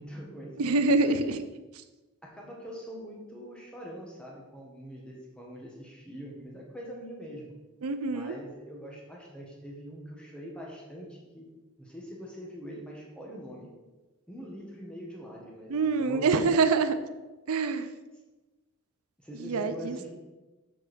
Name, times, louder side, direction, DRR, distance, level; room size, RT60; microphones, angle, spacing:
voice 1, 0.0-1.2 2.2-7.5 8.0-11.4 11.8-13.7 14.3-16.3 19.2-20.1, equal, 5° left, -3 dB, 1.6 m, -43 dB
voice 2, 0.6-1.5 7.8-8.4 15.7-17.0 17.5-17.9 19.4-20.1, right 4 dB, 85° right, 10 dB, 0.5 m, -25 dB
7.8 x 6.5 x 4.5 m, 1.2 s
head